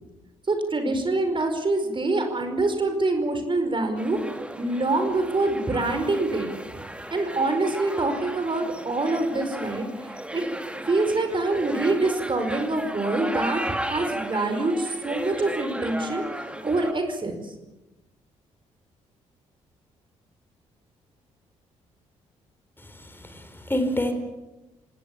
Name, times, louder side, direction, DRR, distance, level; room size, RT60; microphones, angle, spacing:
voice 1, 0.5-4.2 4.6-6.5 7.1-10.4 10.9-17.5, right 2 dB, 30° right, 6 dB, 5.0 m, -25 dB
sound 1, 4.0-16.9, right 1 dB, 5° right, 2.4 m, -35 dB
voice 2, 22.8-24.1, left 1 dB, 15° left, 7 dB, 4.3 m, -28 dB
28.0 x 19.0 x 7.3 m, 0.98 s
figure-of-eight pair, 40°, 16 cm